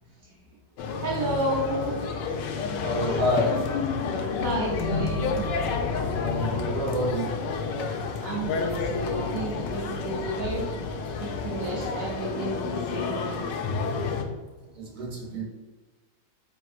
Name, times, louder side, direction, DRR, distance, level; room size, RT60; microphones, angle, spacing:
sound 1, 0.8-14.2, left 5 dB, 75° left, 1.1 m, -30 dB
voice 1, 1.0-2.0 4.4-5.5 8.2-10.8 11.2-13.7, right 2 dB, 70° right, -4 dB, 0.8 m, -31 dB
voice 2, 2.8-3.6 6.2-7.4 14.7-15.4, equal, 45° right, -2 dB, 1.0 m, -28 dB
4.4 x 3.5 x 2.4 m, 1.2 s
omnidirectional pair, 2.1 m